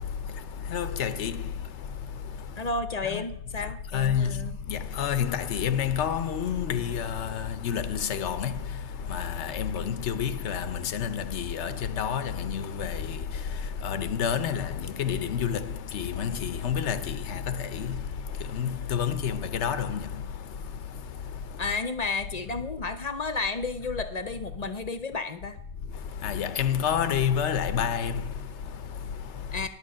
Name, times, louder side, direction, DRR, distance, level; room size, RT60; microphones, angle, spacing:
voice 1, 0.0-2.7 3.0-3.2 3.6-3.7 3.9-21.7 25.9-29.7, left 8 dB, 85° left, 1.0 m, -30 dB
voice 2, 2.6-4.5 21.6-25.6 29.5-29.7, left 3 dB, 40° left, 0.7 m, -32 dB
10.5 x 6.8 x 6.3 m
omnidirectional pair, 1.1 m